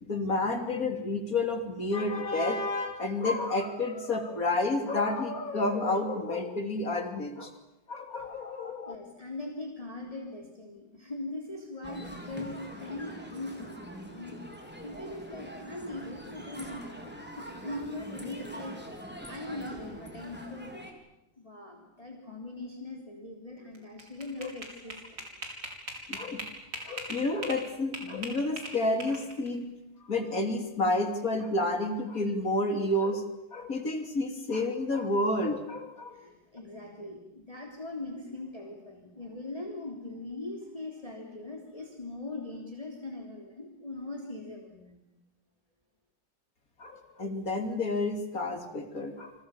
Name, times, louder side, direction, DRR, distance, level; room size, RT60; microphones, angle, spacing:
voice 1, 0.0-7.5 7.9-9.0 24.4-24.5 26.1-26.4 26.8-29.7 30.0-36.1 46.8-49.3, left 2 dB, 45° left, 5 dB, 3.4 m, -30 dB
voice 2, 8.9-14.4 14.8-18.8 19.3-20.9 21.4-25.2 36.1-45.0, left 2 dB, 20° left, 1 dB, 3.5 m, -41 dB
sound 1, 11.8-20.9, equal, 5° right, 4.1 m, -43 dB
sound 2, 23.7-27.6 27.9-29.5, right 2 dB, 70° right, 6.1 m, -39 dB
30.0 x 26.0 x 7.3 m, 0.88 s
omnidirectional pair, 2.1 m